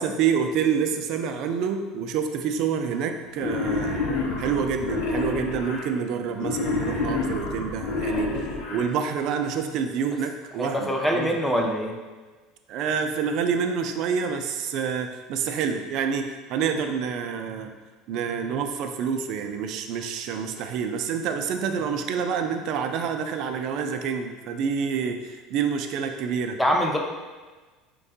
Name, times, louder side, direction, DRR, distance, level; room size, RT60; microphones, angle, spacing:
voice 1, 0.0-4.1 4.4-8.4 8.7-11.3 12.7-17.7 18.1-26.6, right 6 dB, 60° right, 6 dB, 0.3 m, -27 dB
Wild animals, 3.3-5.8 6.3-8.8, left 3 dB, 70° left, 0.8 m, -28 dB
voice 2, 10.6-11.9 26.6-27.0, equal, 5° left, 0 dB, 0.5 m, -24 dB
4.6 x 2.2 x 2.6 m, 1.3 s
supercardioid pair, 90°, 0 cm